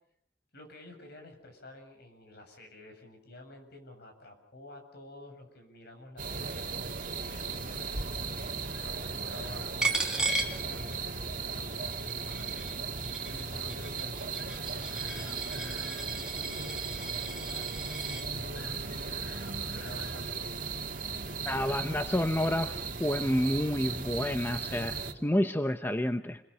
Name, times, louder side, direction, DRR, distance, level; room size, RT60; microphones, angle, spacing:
voice 1, 0.5-6.6 7.2-10.0 10.4-15.7 16.3-19.2 19.7-20.6 21.6-22.8, left 1 dB, 55° left, 4 dB, 7.8 m, -50 dB
sound 1, 6.2-25.1, right 4 dB, 45° right, 2.5 m, -37 dB
Chicken rooster, 8.7-10.5 14.4-16.1 18.5-20.3, left 4 dB, 85° left, 6.7 m, -52 dB
Coin (dropping), 9.8-11.3 11.7-18.3, right 2 dB, 5° right, 2.9 m, -36 dB
voice 2, 21.4-22.7 23.0-26.4, left 1 dB, 10° left, 8 dB, 0.9 m, -29 dB
29.5 x 22.5 x 5.7 m, 0.69 s
head